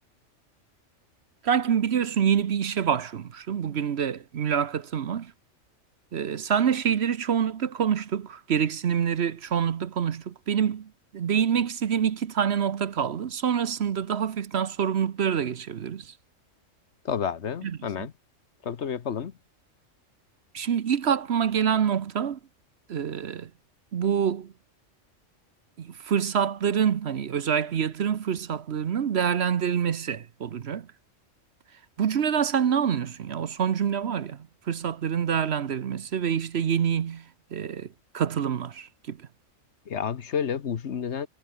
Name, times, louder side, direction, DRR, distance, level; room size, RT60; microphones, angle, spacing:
voice 1, 1.4-5.3 6.1-16.1 17.6-18.1 20.5-22.4 22.9-23.5 23.9-24.5 25.8-30.9 32.0-39.3, right 8 dB, 60° right, 1.1 m, -26 dB
voice 2, 17.0-18.1 18.6-19.3 39.9-41.3, left 7 dB, 60° left, 1.3 m, -30 dB
omnidirectional pair, 1.3 m